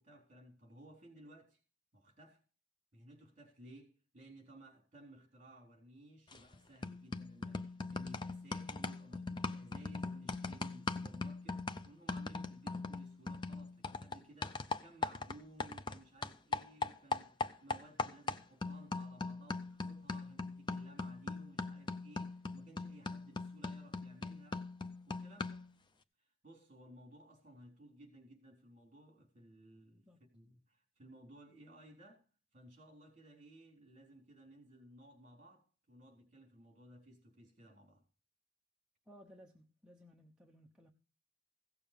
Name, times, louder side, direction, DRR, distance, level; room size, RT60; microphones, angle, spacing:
voice 1, 0.0-1.6 1.9-2.4 2.9-24.7 25.1-25.7 26.2-30.1 30.3-32.2 32.5-38.0, right 1 dB, 35° right, 4.0 m, -58 dB
sound 1, 6.3-6.6 6.8-25.7, left 3 dB, 20° left, 0.5 m, -40 dB
voice 2, 39.1-40.9, equal, 5° right, 1.0 m, -60 dB
16.5 x 7.0 x 5.2 m
head